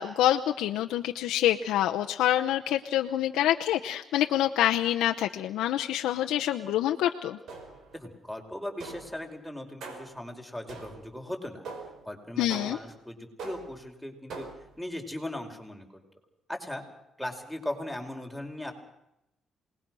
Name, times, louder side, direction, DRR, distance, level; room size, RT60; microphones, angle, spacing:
voice 1, 0.0-7.4 12.4-12.8, left 12 dB, 90° left, 3 dB, 0.9 m, -26 dB
sound 1, 7.5-8.0 8.8-9.2 9.8-10.2 10.7-11.2 11.7-12.1 12.5-13.0 13.4-13.9 14.3-14.8, right 3 dB, 75° right, 5.6 m, -42 dB
voice 2, 7.9-11.7 12.1-14.5 14.8-16.0 16.5-16.8 17.2-18.7, left 1 dB, ahead, 4 dB, 5.3 m, -38 dB
27.5 x 20.0 x 6.3 m, 0.86 s
cardioid pair, 75°, 0 cm